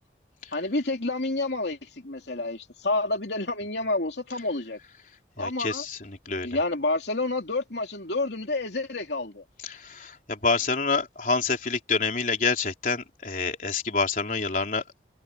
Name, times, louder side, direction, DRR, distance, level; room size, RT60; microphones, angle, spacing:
voice 1, 0.5-4.8 5.4-5.8 6.4-9.4, left 2 dB, 75° left, 2.8 m, -29 dB
voice 2, 5.4-6.5 9.6-14.8, left 4 dB, 50° left, 3.9 m, -27 dB
head